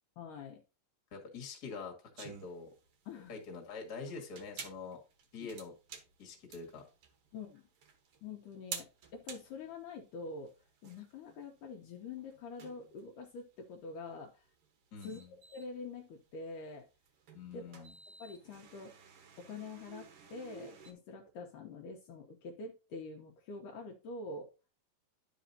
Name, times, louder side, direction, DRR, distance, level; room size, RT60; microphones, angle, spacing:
voice 1, 0.2-0.6 3.1-3.4 5.4-5.5 7.3-7.6 8.2-10.5 10.8-14.4 15.0-16.9 17.5-17.8 18.2-19.0 19.4-24.5, left 4 dB, 75° left, 1 dB, 2.2 m, -46 dB
voice 2, 1.1-2.7 3.3-5.0 5.3-5.7 6.2-6.9 14.9-15.3 17.3-17.9, left 4 dB, 35° left, 0 dB, 1.7 m, -45 dB
sound 1, 2.2-20.9, right 6 dB, 70° right, 1.4 m, -52 dB
11.5 x 5.1 x 2.7 m, 0.31 s
omnidirectional pair, 4.1 m